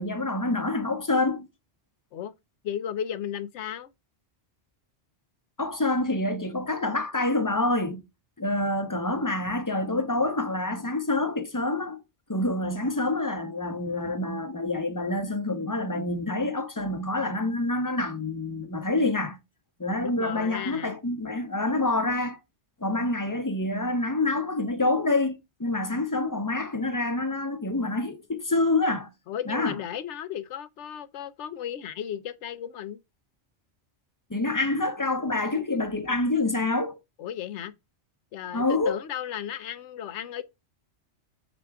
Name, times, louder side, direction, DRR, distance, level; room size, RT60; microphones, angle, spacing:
voice 1, 0.0-1.5 5.6-8.0 8.4-12.0 12.3-19.4 19.8-22.4 22.8-29.1 29.5-29.7 34.3-37.0 38.5-39.0, left 2 dB, 20° left, 0.9 m, -27 dB
voice 2, 2.6-3.9 20.0-21.0 29.3-33.0 37.2-37.7 38.3-40.4, left 9 dB, 75° left, 1.0 m, -35 dB
7.0 x 4.9 x 3.5 m
omnidirectional pair, 1.2 m